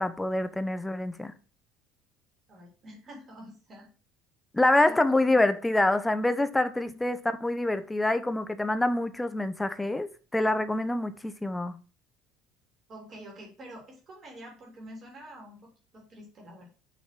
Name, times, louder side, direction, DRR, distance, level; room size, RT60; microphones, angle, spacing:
voice 1, 0.0-1.3 4.5-10.1 10.3-11.8, left 2 dB, 10° left, 0.9 m, -26 dB
voice 2, 2.5-3.9 4.8-5.0 6.8-7.0 12.9-16.7, equal, 35° right, 3.4 m, -47 dB
6.5 x 5.4 x 6.0 m
figure-of-eight pair, 60°, 0 cm